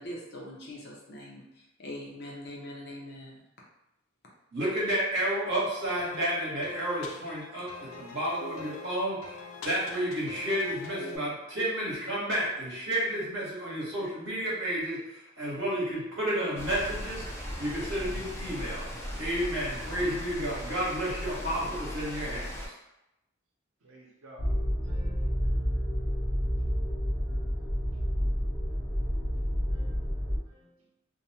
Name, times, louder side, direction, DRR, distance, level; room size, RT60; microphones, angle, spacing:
voice 1, 0.0-3.4, left 1 dB, 55° left, -3 dB, 0.6 m, -42 dB
voice 2, 4.5-9.4 9.6-18.8 19.2-22.8, equal, 65° right, -6 dB, 1.0 m, -31 dB
sound 1, 6.0-11.2, left 2 dB, 90° left, 0.3 m, -44 dB
sound 2, 16.6-22.7, equal, 15° left, 0.4 m, -38 dB
voice 3, 23.8-24.6 24.8-25.4 28.7-28.9 29.7-30.0 30.5-30.7, equal, 85° right, -2 dB, 0.7 m, -52 dB
sound 3, 24.4-30.4, equal, 25° right, 0.9 m, -29 dB
2.5 x 2.1 x 2.8 m, 0.88 s
head